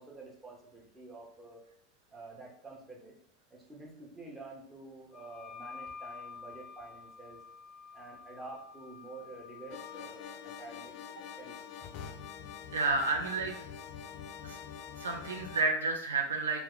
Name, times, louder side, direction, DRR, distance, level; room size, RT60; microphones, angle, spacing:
voice 1, 0.0-1.6 2.1-3.1 3.5-7.4 7.9-11.8, right 3 dB, 15° right, -3 dB, 1.1 m, -49 dB
Wind instrument woodwind instrument, 5.1-10.1, left 6 dB, 20° left, 0.8 m, -49 dB
sound 1, 9.7-15.6, left 7 dB, 55° left, 0.4 m, -45 dB
voice 2, 12.7-13.6 14.4-14.6 15.0-16.6, right 3 dB, 85° right, 3 dB, 0.4 m, -30 dB
2.7 x 2.2 x 3.9 m, 0.69 s
hypercardioid pair, 90°, 0 cm